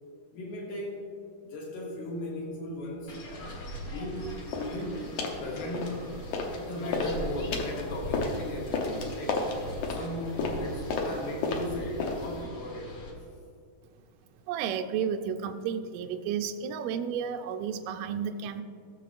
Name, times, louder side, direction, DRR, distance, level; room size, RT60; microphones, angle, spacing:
voice 1, 0.3-1.1 1.4-3.6 3.8-5.1 5.4-6.2 6.5-13.0, left 1 dB, 85° left, -2 dB, 2.8 m, -37 dB
sound 1, 3.1-13.1, equal, 50° left, 1.4 m, -40 dB
sound 2, 4.5-4.8 5.2-5.4 5.7-6.6 6.9-12.4, left 3 dB, 70° left, 2.0 m, -32 dB
voice 2, 14.5-18.6, right 7 dB, 85° right, 6 dB, 1.6 m, -32 dB
15.5 x 7.3 x 2.5 m, 2.3 s
omnidirectional pair, 3.9 m